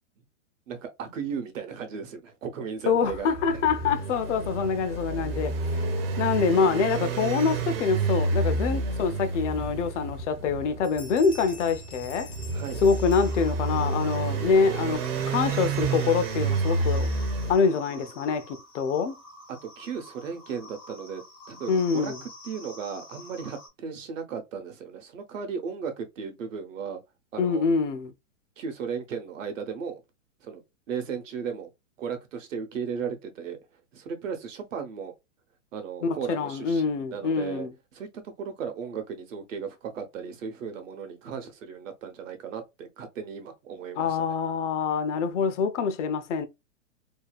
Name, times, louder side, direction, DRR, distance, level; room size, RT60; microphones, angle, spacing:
voice 1, 0.7-3.3 3.5-3.7 12.5-12.8 17.6-18.1 19.5-22.1 22.4-27.0 27.3-27.6 28.6-30.0 30.4-30.6 30.9-31.7 32.0-33.6 33.9-35.1 35.7-37.7 37.9-44.2, right 6 dB, 75° right, 0.9 m, -36 dB
voice 2, 2.9-5.5 6.2-12.3 12.8-17.1 17.5-19.2 21.7-22.2 27.4-28.1 36.0-37.7 44.0-46.5, left 5 dB, 65° left, 0.6 m, -25 dB
sound 1, 3.1-17.6, right 3 dB, 50° right, 0.6 m, -29 dB
sound 2, 10.4-10.6 10.8-14.0, left 4 dB, 85° left, 1.0 m, -47 dB
sound 3, 13.0-23.7, left 1 dB, 5° left, 0.3 m, -48 dB
2.7 x 2.2 x 2.3 m
hypercardioid pair, 155°, 38 cm